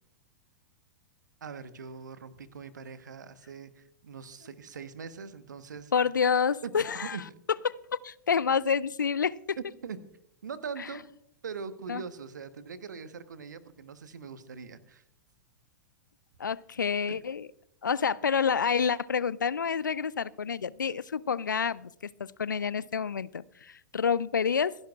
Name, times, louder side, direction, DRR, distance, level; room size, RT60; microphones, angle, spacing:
voice 1, 1.4-5.9 6.6-6.7 7.0-7.2 9.6-10.0 10.4-11.0 11.4-15.0, right 6 dB, 70° right, 12 dB, 1.2 m, -41 dB
voice 2, 5.9-7.2 7.6-7.8 8.0-9.6 10.8-10.9 11.9-12.0 16.4-17.5 17.8-21.9 22.2-24.7, left 6 dB, 80° left, 21 dB, 0.4 m, -28 dB
27.0 x 11.0 x 2.4 m, 0.73 s
figure-of-eight pair, 100°, 10 cm